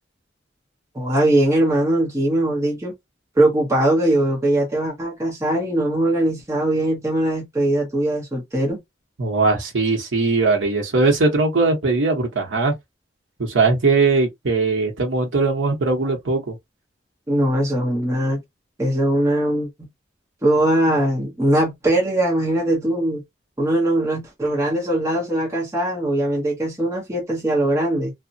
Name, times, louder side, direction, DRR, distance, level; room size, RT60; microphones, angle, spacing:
voice 1, 0.9-2.9 3.4-8.8 17.3-18.4 18.8-19.9 20.4-23.2 23.6-28.1, right 1 dB, 15° right, 0.8 m, -20 dB
voice 2, 9.2-12.7 13.4-16.5, right 3 dB, 85° right, 0.8 m, -20 dB
2.8 x 2.1 x 2.6 m
head